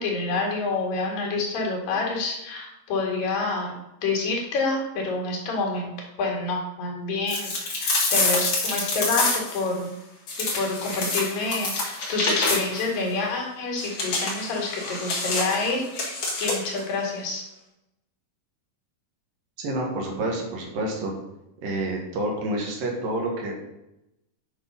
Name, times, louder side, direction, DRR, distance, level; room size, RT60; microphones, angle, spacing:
voice 1, 0.0-3.8 4.0-5.9 6.2-9.9 10.4-17.5, left 3 dB, 80° left, -1 dB, 3.8 m, -28 dB
sound 1, 7.3-9.6 10.3-12.9 13.8-16.8, left 3 dB, 40° left, 2.0 m, -27 dB
voice 2, 19.6-21.1 21.6-23.5, right 1 dB, 75° right, 0 dB, 3.4 m, -28 dB
9.2 x 5.3 x 5.3 m, 0.89 s
omnidirectional pair, 4.0 m